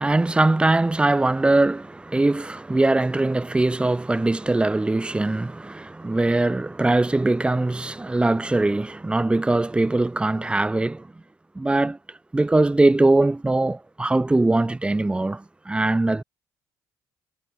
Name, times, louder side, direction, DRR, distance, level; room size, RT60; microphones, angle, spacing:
voice 1, 0.0-11.1 11.5-12.0 12.3-16.2, right 2 dB, 15° right, 1.3 m, -21 dB
supercardioid pair, 80°, 8 cm